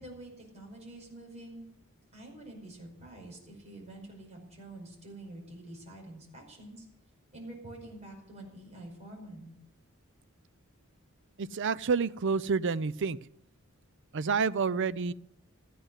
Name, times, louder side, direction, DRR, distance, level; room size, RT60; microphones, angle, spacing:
voice 1, 0.0-1.6 2.1-6.8 7.3-9.5, right 1 dB, 35° right, -1 dB, 5.2 m, -47 dB
voice 2, 11.4-13.2 14.1-15.1, right 5 dB, 60° right, 17 dB, 0.5 m, -29 dB
14.5 x 9.4 x 8.0 m, 0.75 s
head